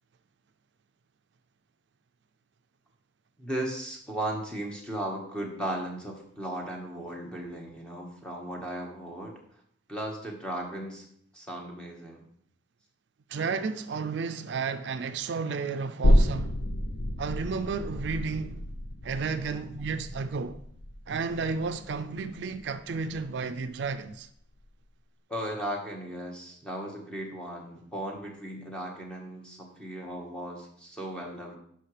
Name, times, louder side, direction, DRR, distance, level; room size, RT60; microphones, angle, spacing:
voice 1, 3.4-9.3 9.9-11.0 11.3-12.2 25.3-31.6, right 1 dB, 5° left, 1.4 m, -36 dB
voice 2, 13.3-16.6 17.2-18.7 19.0-20.6 21.1-24.3, right 4 dB, 65° right, 0.4 m, -32 dB
sound 1, 16.0-23.3 23.7-23.8, equal, 65° left, 0.6 m, -29 dB
10.0 x 5.7 x 3.3 m
head